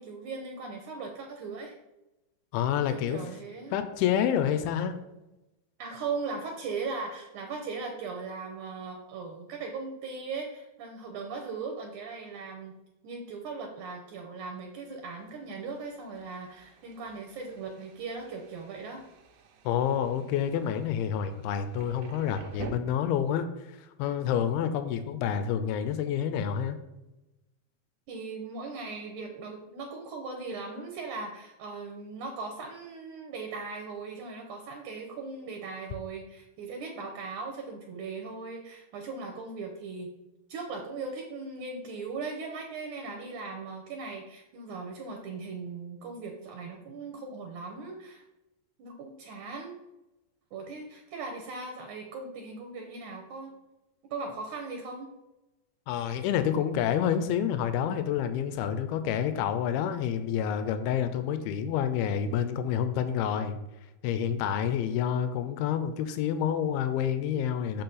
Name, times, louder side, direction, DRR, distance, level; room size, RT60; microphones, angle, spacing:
voice 1, 0.0-1.8 2.9-3.8 5.8-12.7 13.0-19.0 28.1-40.1 40.5-48.2 48.8-49.8 50.5-53.5 54.1-55.1, right 4 dB, 70° right, 3 dB, 1.9 m, -38 dB
voice 2, 2.5-3.2 3.7-5.0 19.7-23.5 24.0-26.8 55.9-63.6 64.0-67.8, left 9 dB, 85° left, 10 dB, 2.5 m, -28 dB
Thunder, 14.6-22.7, right 6 dB, 90° right, 2.7 m, -50 dB
6.7 x 6.0 x 3.9 m, 0.97 s
omnidirectional pair, 4.5 m